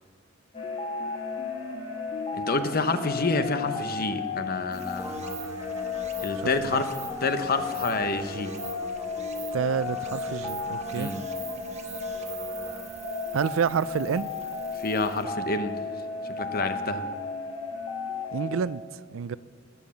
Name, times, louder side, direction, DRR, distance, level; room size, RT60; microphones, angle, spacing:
sound 1, 0.5-18.6, left 3 dB, 30° left, 1.6 m, -34 dB
voice 1, 2.3-5.2 6.2-6.9 7.2-8.5 10.9-11.2 14.8-15.9 16.4-17.1, left 3 dB, 50° left, 0.9 m, -28 dB
Stream, 4.7-15.3, right 8 dB, 35° right, 1.1 m, -47 dB
sound 2, 5.0-12.8, equal, 15° right, 1.3 m, -44 dB
voice 2, 6.4-6.8 9.5-11.1 13.3-14.3 18.3-19.4, right 6 dB, 85° right, 0.4 m, -29 dB
20.0 x 7.3 x 7.0 m
head